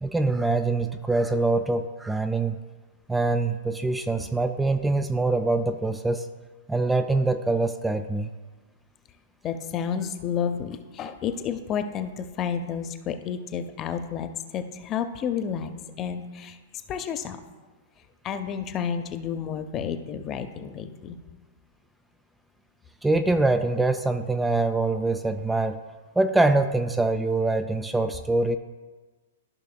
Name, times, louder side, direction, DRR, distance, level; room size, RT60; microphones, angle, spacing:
voice 1, 0.0-2.6 3.1-6.3 6.7-8.3 23.0-25.8 26.2-28.6, right 2 dB, 5° right, 8 dB, 0.3 m, -24 dB
voice 2, 9.4-15.7 16.0-16.5 16.9-17.4 18.2-21.2, left 7 dB, 30° left, 9 dB, 0.6 m, -30 dB
14.0 x 5.5 x 2.2 m, 1.3 s
hypercardioid pair, 115°, 0 cm